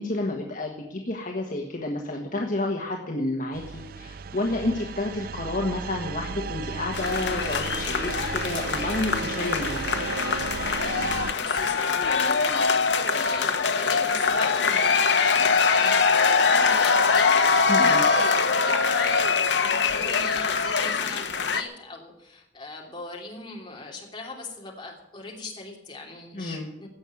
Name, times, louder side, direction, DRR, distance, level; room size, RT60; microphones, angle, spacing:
voice 1, 0.0-10.0 17.7-18.0 26.3-26.7, left 2 dB, 45° left, 0 dB, 1.4 m, -30 dB
sound 1, 3.5-11.3, right 5 dB, 50° right, 0.4 m, -34 dB
sound 2, 6.9-21.6, left 5 dB, 65° left, 1.1 m, -23 dB
voice 2, 11.3-26.9, left 2 dB, 25° left, -1 dB, 3.1 m, -39 dB
16.5 x 6.3 x 9.7 m, 0.85 s
head